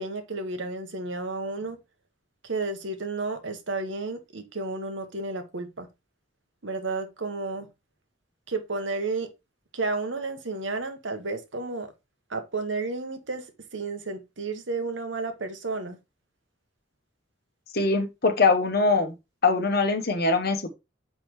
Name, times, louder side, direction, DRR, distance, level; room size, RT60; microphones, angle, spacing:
voice 1, 0.0-1.8 2.5-5.9 6.6-7.7 8.5-9.3 9.7-11.9 12.3-13.4 13.7-16.0, right 3 dB, 75° right, 1.2 m, -32 dB
voice 2, 17.7-19.1 19.4-20.7, left 3 dB, 55° left, 1.1 m, -22 dB
6.8 x 5.1 x 3.1 m
head